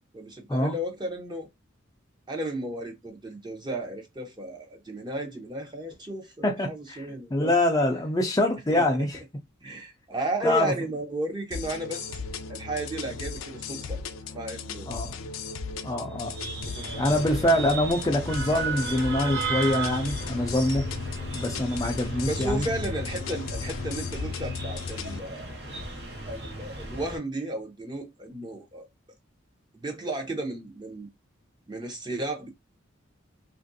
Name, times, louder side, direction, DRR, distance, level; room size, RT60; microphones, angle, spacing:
voice 1, 0.1-1.5 2.3-7.6 8.7-8.9 9.6-12.1 12.5-14.0 14.3-14.9 16.6-17.4 22.3-25.7 26.3-28.9 29.7-31.1 31.7-32.5, right 1 dB, 20° right, 0.8 m, -34 dB
voice 2, 6.4-9.2 10.4-10.7 14.9-15.1 15.8-16.4 17.0-20.9 21.3-22.7, left 1 dB, 20° left, 0.4 m, -25 dB
sound 1, 11.5-25.2, left 5 dB, 80° left, 0.4 m, -36 dB
sound 2, 16.1-27.2, right 3 dB, 60° right, 0.9 m, -35 dB
3.0 x 2.5 x 2.6 m
head